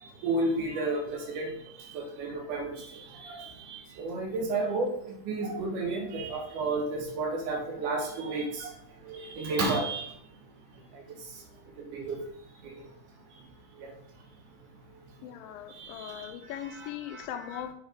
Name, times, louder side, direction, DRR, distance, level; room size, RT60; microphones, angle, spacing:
voice 1, 0.0-1.5 1.9-8.7 9.0-10.1 10.9-11.0 11.9-12.2 12.6-12.7 13.8-13.9 15.8-16.3 16.7-17.3 17.5-17.6, right 2 dB, 70° right, 3 dB, 2.5 m, -32 dB
voice 2, 15.2-17.7, left 10 dB, 85° left, 8 dB, 2.4 m, -39 dB
7.3 x 4.2 x 5.0 m, 0.70 s
omnidirectional pair, 4.1 m